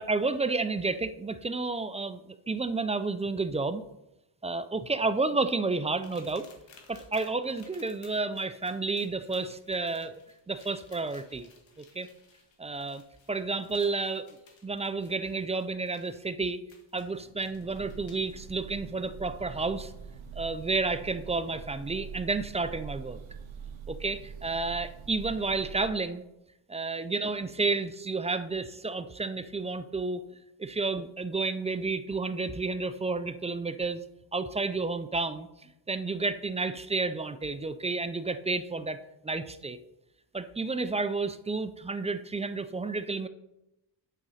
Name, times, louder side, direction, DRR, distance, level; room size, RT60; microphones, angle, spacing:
voice 1, 0.0-3.8 4.4-6.5 6.9-10.2 10.5-11.5 11.9-12.1 12.6-13.0 13.3-14.3 14.6-16.6 16.9-19.9 20.4-23.2 23.9-26.2 26.7-30.2 30.6-34.0 34.3-35.5 35.9-39.0 39.2-39.8 40.3-43.3, right 3 dB, 15° right, 11 dB, 0.3 m, -31 dB
sound 1, 6.0-18.3 19.6-19.7 20.3-20.4, left 5 dB, 65° left, 1.8 m, -59 dB
sound 2, 16.9-22.8, left 1 dB, 50° left, 1.9 m, -58 dB
Breathing / Bird, 17.5-26.0, right 7 dB, 75° right, 1.0 m, -44 dB
9.1 x 6.1 x 4.1 m, 0.90 s
cardioid pair, 110°, 48 cm